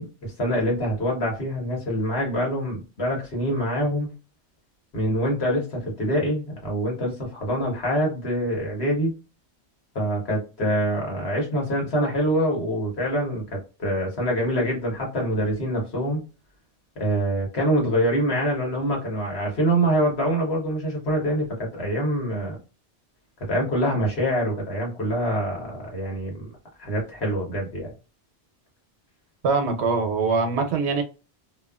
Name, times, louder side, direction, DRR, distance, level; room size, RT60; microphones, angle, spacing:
voice 1, 0.0-4.1 4.9-9.1 9.9-16.2 17.0-22.6 23.5-26.5 26.8-27.9, equal, 70° left, -1 dB, 1.5 m, -25 dB
voice 2, 29.4-31.0, right 4 dB, 80° right, 6 dB, 1.0 m, -23 dB
2.9 x 2.3 x 2.3 m, 0.32 s
omnidirectional pair, 1.1 m